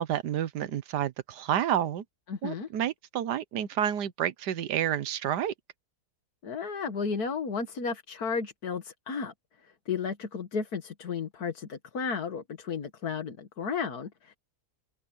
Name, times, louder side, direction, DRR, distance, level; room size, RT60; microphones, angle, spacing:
voice 1, 0.0-2.0 2.4-5.5, right 10 dB, 80° right, 1.5 m, -29 dB
voice 2, 2.3-2.7 6.4-9.3 9.6-14.4, left 5 dB, 65° left, 2.2 m, -33 dB
open air
omnidirectional pair, 1.7 m